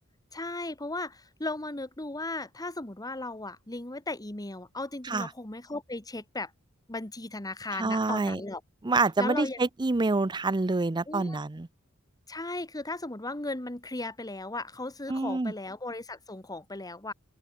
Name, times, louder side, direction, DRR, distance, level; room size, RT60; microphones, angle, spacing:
voice 1, 0.3-6.5 6.9-8.6 9.2-9.6 11.1-11.4 12.3-17.1, left 2 dB, 15° left, 1.6 m, -36 dB
voice 2, 7.8-8.4 8.8-11.7 15.1-15.5, right 3 dB, 20° right, 0.5 m, -27 dB
open air
head